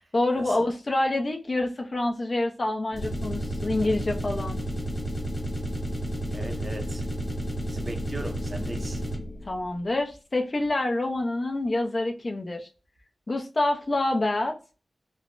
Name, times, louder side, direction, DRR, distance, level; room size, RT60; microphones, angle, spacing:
voice 1, 0.1-4.6 9.5-12.7 13.3-14.6, left 2 dB, 40° left, 0.5 m, -27 dB
sound 1, 2.9-9.5, equal, 25° left, 1.2 m, -31 dB
voice 2, 6.3-7.1 7.6-9.0, right 1 dB, 40° right, 0.6 m, -38 dB
3.4 x 2.0 x 2.5 m
wide cardioid pair, 105°, 0 cm